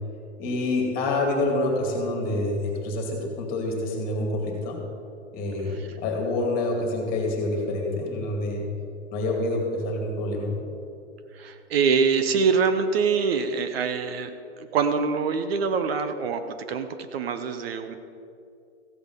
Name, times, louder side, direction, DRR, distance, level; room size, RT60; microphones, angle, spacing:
voice 1, 0.4-4.8 5.3-8.7 9.1-10.5, left 2 dB, 25° left, 1 dB, 2.3 m, -27 dB
voice 2, 11.3-14.3 14.6-17.9, right 5 dB, 55° right, 9 dB, 0.8 m, -24 dB
15.0 x 5.1 x 8.1 m, 2.5 s
hypercardioid pair, 150°, 37 cm